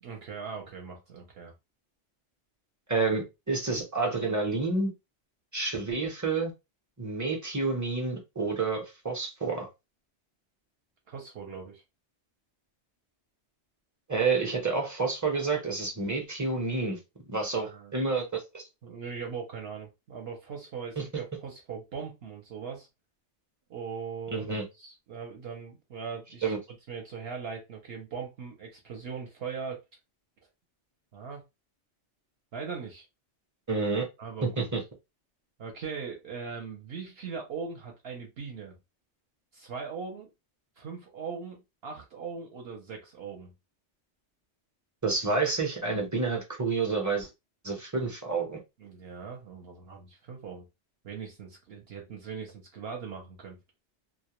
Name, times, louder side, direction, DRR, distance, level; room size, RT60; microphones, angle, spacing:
voice 1, 0.0-1.5 11.1-11.8 17.5-17.9 18.8-22.9 23.7-24.5 24.8-26.5 26.9-29.8 31.1-31.4 32.5-33.1 34.2-34.7 35.6-38.7 39.5-40.3 40.8-43.5 48.8-50.6 51.0-53.6, right 5 dB, 65° right, 1 dB, 0.8 m, -40 dB
voice 2, 2.9-4.9 5.5-6.5 7.0-9.7 14.1-17.0 17.3-18.6 21.0-21.1 24.3-24.6 26.4-26.6 33.7-34.1 34.4-34.8 45.0-47.3 47.6-48.6, right 4 dB, 20° right, 1 dB, 0.5 m, -29 dB
2.2 x 2.1 x 2.9 m, 0.23 s
omnidirectional pair, 1.2 m